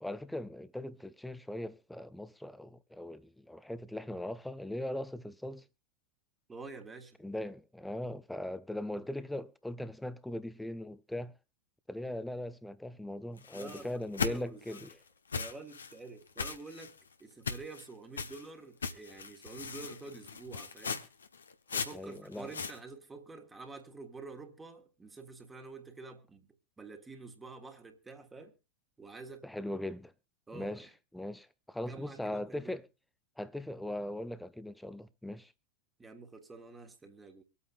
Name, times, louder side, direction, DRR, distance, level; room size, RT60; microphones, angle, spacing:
voice 1, 0.0-5.6 7.2-11.3 11.9-15.0 21.9-22.5 29.4-30.1 30.5-30.9 31.1-32.9 33.4-35.5, left 1 dB, 5° left, 0.6 m, -40 dB
voice 2, 6.5-7.2 13.5-13.9 14.2-14.8 15.3-21.1 21.7-26.5 26.8-28.5 29.0-29.4 30.5-30.9 31.8-32.8 36.0-37.4, right 3 dB, 10° right, 1.6 m, -48 dB
sound 1, 13.4-14.9 15.3-15.9 16.4-17.0 17.5-17.9 18.2-18.5 18.8-22.8, left 5 dB, 70° left, 1.0 m, -38 dB
25.0 x 8.5 x 2.5 m
figure-of-eight pair, 90°, 0 cm